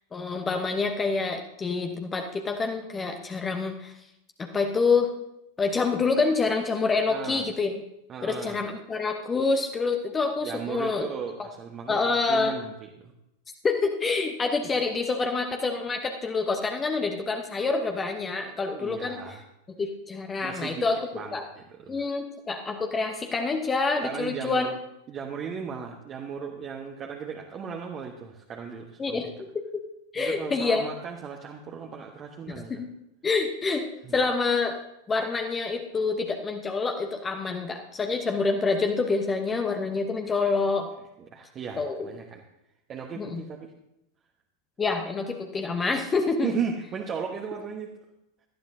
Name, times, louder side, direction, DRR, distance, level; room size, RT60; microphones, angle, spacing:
voice 1, 0.1-3.9 4.4-5.1 5.6-7.8 8.2-11.1 11.9-12.5 13.6-19.4 19.8-21.0 21.3-21.4 21.9-24.7 29.0-29.3 29.7-29.8 30.1-30.8 32.5-32.9 33.2-33.8 34.1-34.7 35.1-40.9 41.8-42.1 43.2-43.4 44.8-46.5, left 4 dB, 15° left, 4 dB, 1.0 m, -27 dB
voice 2, 7.1-7.4 8.1-8.6 10.4-13.1 18.4-19.4 20.4-20.8 21.1-22.1 24.0-24.8 25.1-29.3 30.1-32.8 34.0-34.1 41.2-42.4 42.9-43.7 46.4-47.9, right 6 dB, 30° right, 1 dB, 1.3 m, -36 dB
18.5 x 12.5 x 2.7 m, 0.85 s
figure-of-eight pair, 90°, 0 cm